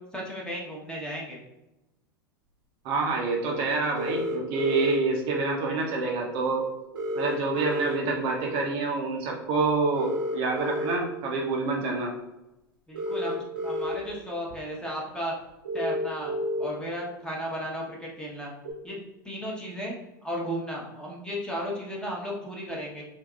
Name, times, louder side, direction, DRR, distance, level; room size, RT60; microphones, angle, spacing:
voice 1, 0.1-1.4 12.9-15.3 15.7-18.5 18.8-19.0 19.2-20.0 20.2-23.0, equal, 5° left, -3 dB, 0.9 m, -34 dB
voice 2, 2.8-6.7 7.2-12.1, right 3 dB, 45° right, 0 dB, 0.7 m, -27 dB
sound 1, 3.9-5.0 6.9-8.0 9.9-10.9 12.9-13.9 14.5-14.6 15.6-16.6 18.6-18.7, equal, 85° right, 0.9 m, -30 dB
3.5 x 2.8 x 2.3 m, 0.96 s
hypercardioid pair, 90°, 12 cm